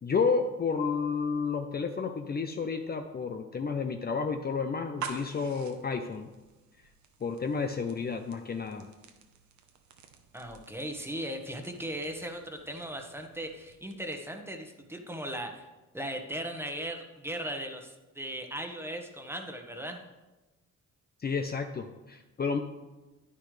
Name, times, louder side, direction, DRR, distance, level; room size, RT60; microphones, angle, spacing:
voice 1, 0.0-6.3 7.2-8.9 21.2-22.6, left 5 dB, 30° left, 6 dB, 0.6 m, -31 dB
sound 1, 4.8-14.5, right 6 dB, 70° right, 1.1 m, -48 dB
voice 2, 10.3-15.7 15.9-20.0, right 1 dB, 10° right, 4 dB, 1.3 m, -38 dB
10.0 x 9.9 x 3.3 m, 1.1 s
cardioid pair, 90°, 30 cm